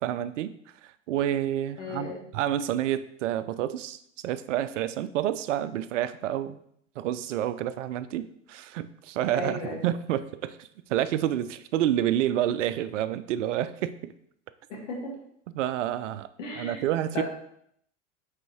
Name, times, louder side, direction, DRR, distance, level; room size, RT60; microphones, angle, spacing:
voice 1, 0.0-0.5 0.8-4.0 4.2-6.6 7.0-14.1 15.5-16.3 16.6-17.2, right 11 dB, 70° right, 14 dB, 0.5 m, -29 dB
voice 2, 1.8-2.2 9.3-9.9 14.7-15.2 16.4-16.8 17.1-17.2, left 3 dB, 75° left, -2 dB, 1.9 m, -35 dB
5.3 x 4.1 x 4.3 m, 0.70 s
figure-of-eight pair, 80°, 38 cm